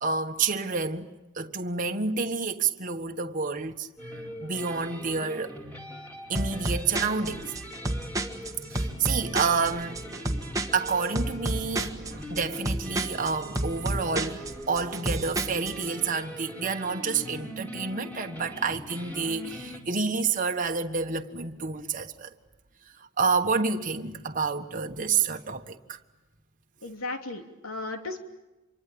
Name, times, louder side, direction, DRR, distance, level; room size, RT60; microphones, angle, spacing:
voice 1, 0.0-1.1 1.3-3.9 4.4-5.6 6.3-7.5 8.7-10.0 10.7-22.3 23.0-26.0, right 5 dB, 40° right, 1.4 m, -29 dB
sound 1, 4.0-19.8, equal, 10° left, 4.7 m, -42 dB
sound 2, 6.4-15.9, right 1 dB, 15° right, 1.6 m, -31 dB
voice 2, 26.8-28.2, left 2 dB, 75° left, 3.1 m, -35 dB
27.0 x 24.0 x 8.7 m
head